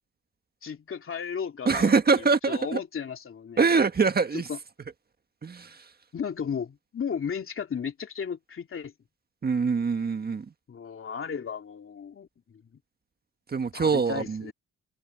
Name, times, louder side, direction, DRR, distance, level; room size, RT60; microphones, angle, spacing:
voice 1, 0.6-1.9 2.5-3.6 4.5-4.6 6.1-8.9 10.7-12.6 13.7-14.5, left 7 dB, 45° left, 2.9 m, -34 dB
voice 2, 1.7-2.8 3.6-4.5 5.4-5.9 9.4-10.5 13.5-14.5, right 4 dB, 30° right, 1.6 m, -24 dB
cardioid pair, 90°, 30 cm